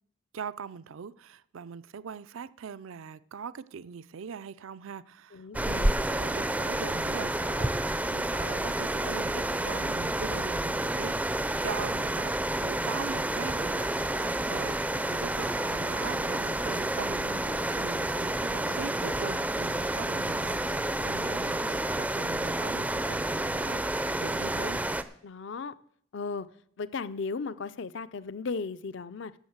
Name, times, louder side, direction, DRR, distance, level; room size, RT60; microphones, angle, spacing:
voice 1, 0.3-11.2 11.6-14.8 15.1-24.8, right 6 dB, 70° right, 0.4 m, -41 dB
voice 2, 5.3-6.0 25.2-25.7 26.1-26.5 26.8-29.3, left 4 dB, 55° left, 0.5 m, -36 dB
sound 1, 5.5-25.0, right 1 dB, 5° right, 0.4 m, -30 dB
sound 2, 13.9-21.9, left 3 dB, 80° left, 4.2 m, -47 dB
11.5 x 7.2 x 7.9 m
head